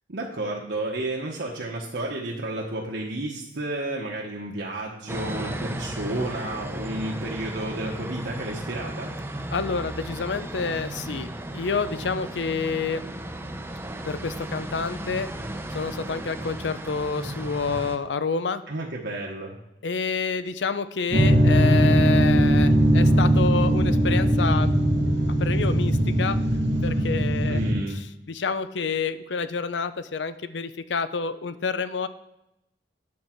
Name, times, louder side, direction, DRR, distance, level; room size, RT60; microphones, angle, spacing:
voice 1, 0.1-9.1 18.7-19.5 27.5-28.0, right 2 dB, 70° right, -2 dB, 1.1 m, -31 dB
sound 1, 5.1-18.0, right 1 dB, 15° right, 0.6 m, -35 dB
voice 2, 9.5-13.0 14.1-15.3 15.7-18.6 19.8-24.7 25.4-26.4 26.8-27.6 27.9-32.1, left 5 dB, 80° left, 13 dB, 0.6 m, -28 dB
sound 2, 21.1-27.7, right 1 dB, 85° right, 2.0 m, -20 dB
9.4 x 7.2 x 4.5 m, 0.88 s
head